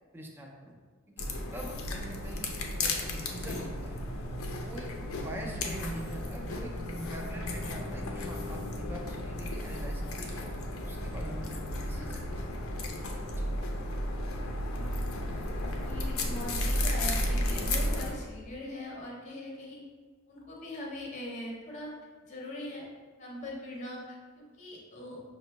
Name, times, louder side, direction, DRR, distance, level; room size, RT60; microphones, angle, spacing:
voice 1, 0.1-0.8 1.1-1.2 1.5-2.5 2.8-4.0 4.6-6.8 7.1-10.5 10.8-12.5 13.3-13.5, equal, 10° right, -1 dB, 0.4 m, -45 dB
sound 1, 1.2-18.1, left 1 dB, 90° left, 0.5 m, -33 dB
voice 2, 15.8-19.8 20.3-21.9 22.2-22.9 23.2-25.2, left 1 dB, 35° left, -2 dB, 0.7 m, -41 dB
5.8 x 2.2 x 2.8 m, 1.5 s
head